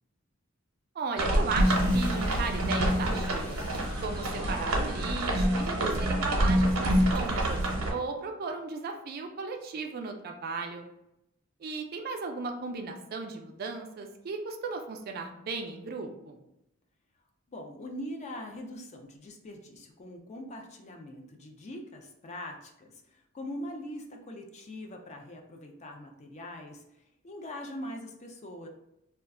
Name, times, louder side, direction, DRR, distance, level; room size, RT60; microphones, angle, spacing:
voice 1, 0.9-3.6 4.0-7.6 7.9-10.9 11.6-16.4, right 4 dB, 50° right, 4 dB, 0.4 m, -36 dB
sound 1, 1.2-7.9, right 1 dB, 80° right, 0.7 m, -27 dB
sound 2, 1.6-7.6, equal, 10° left, 0.8 m, -44 dB
voice 2, 17.5-26.8 27.2-28.7, left 1 dB, 35° left, 3 dB, 0.4 m, -42 dB
2.3 x 2.2 x 3.6 m, 0.84 s
head